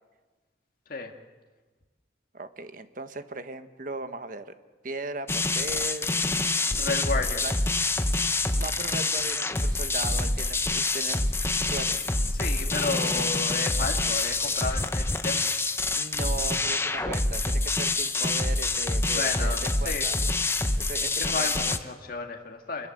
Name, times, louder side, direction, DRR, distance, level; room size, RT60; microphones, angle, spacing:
voice 1, 2.3-4.5 4.8-6.1 7.4-7.5 8.6-11.2 11.6-12.0 15.9-20.1 20.8-21.5, right 2 dB, 45° right, 9 dB, 1.4 m, -37 dB
sound 1, 5.3-21.8, left 2 dB, 15° left, 0.9 m, -26 dB
voice 2, 6.7-7.4 12.3-15.5 19.1-20.1 21.1-22.9, left 3 dB, 50° left, 2 dB, 2.1 m, -32 dB
28.0 x 20.5 x 7.9 m, 1.3 s
head